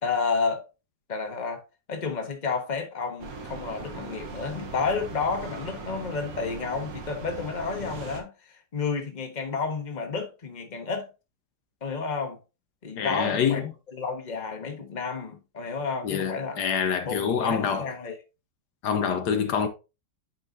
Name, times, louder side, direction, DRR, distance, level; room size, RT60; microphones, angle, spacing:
voice 1, 0.0-0.6 1.1-1.6 1.9-11.1 11.8-12.4 12.8-16.6 17.0-18.1, left 5 dB, 30° left, 1.3 m, -31 dB
sound 1, 3.2-8.2, right 4 dB, 60° right, 1.6 m, -39 dB
voice 2, 13.0-13.6 16.0-17.9 18.8-19.7, left 7 dB, 75° left, 1.4 m, -26 dB
8.8 x 5.5 x 2.7 m
omnidirectional pair, 1.8 m